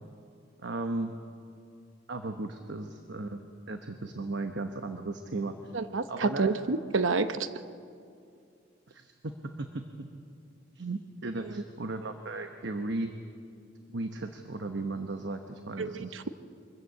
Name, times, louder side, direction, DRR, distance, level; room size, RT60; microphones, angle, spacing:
voice 1, 0.6-1.1 2.1-3.4 3.7-5.7 6.1-6.5 8.9-9.3 9.6-9.8 10.7-13.1 13.9-16.2, right 2 dB, 65° right, 6 dB, 1.0 m, -36 dB
voice 2, 5.7-7.5 11.4-11.5 15.8-16.3, right 4 dB, 90° right, 11 dB, 0.8 m, -29 dB
24.0 x 14.5 x 8.3 m, 2.4 s
head